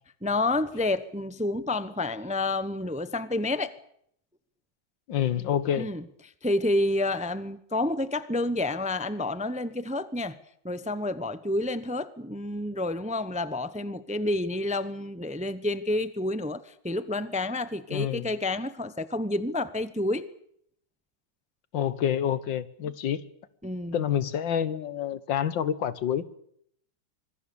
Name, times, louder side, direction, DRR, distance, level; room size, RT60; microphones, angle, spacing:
voice 1, 0.2-3.7 5.8-6.0 6.4-10.4 10.6-20.3 23.6-24.0, left 2 dB, 5° right, 0.6 m, -29 dB
voice 2, 5.1-5.9 17.9-18.3 21.7-23.2 23.9-26.2, left 9 dB, 85° left, 1.9 m, -27 dB
25.5 x 21.0 x 7.0 m
omnidirectional pair, 2.0 m